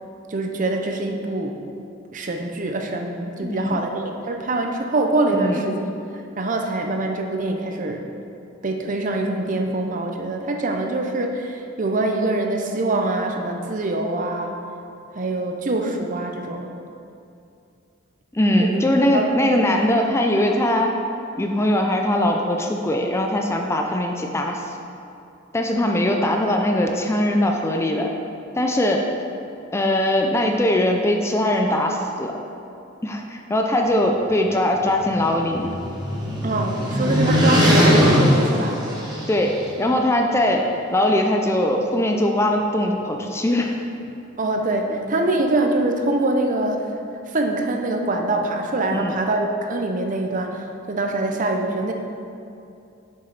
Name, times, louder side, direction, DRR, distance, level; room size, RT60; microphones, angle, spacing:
voice 1, 0.3-1.6 2.1-5.9 6.4-8.1 8.6-14.6 15.1-16.7 18.6-18.8 19.1-19.4 36.4-38.8 44.4-47.0 47.3-51.9, right 2 dB, 40° right, 3 dB, 0.6 m, -24 dB
voice 2, 3.4-3.8 5.3-5.6 18.3-20.9 21.3-24.6 25.5-28.1 28.5-29.1 29.7-32.3 33.0-35.7 39.3-43.8 48.9-49.1, left 1 dB, 15° left, 2 dB, 0.4 m, -21 dB
sound 1, 34.8-39.6, equal, 20° right, 1.2 m, -20 dB
7.0 x 6.5 x 4.0 m, 2.6 s
head